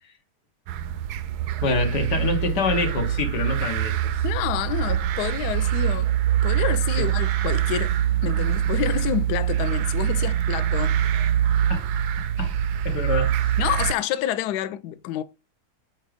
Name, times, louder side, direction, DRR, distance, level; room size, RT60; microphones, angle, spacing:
sound 1, 0.7-13.9, right 10 dB, 90° right, 0.8 m, -24 dB
voice 1, 1.6-4.1 7.0-7.1 11.7-11.9 12.4-12.6 12.8-13.6, left 3 dB, 55° left, 1.8 m, -26 dB
voice 2, 4.2-11.0 13.6-15.2, left 12 dB, 85° left, 0.9 m, -28 dB
6.0 x 4.3 x 5.0 m
omnidirectional pair, 2.3 m